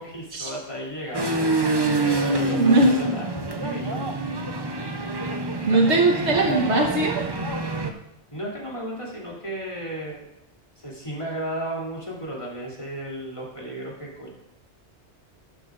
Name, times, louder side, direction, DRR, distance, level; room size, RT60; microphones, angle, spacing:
voice 1, 0.0-1.4 2.2-4.0 8.3-10.2 10.8-14.3, right 1 dB, 25° left, -5 dB, 3.1 m, -34 dB
sound 1, 1.1-7.9, right 2 dB, 25° right, 0.7 m, -26 dB
voice 2, 2.5-2.9 5.7-7.2, right 2 dB, 80° right, 1 dB, 1.6 m, -20 dB
12.5 x 11.5 x 2.6 m, 0.89 s
omnidirectional pair, 1.2 m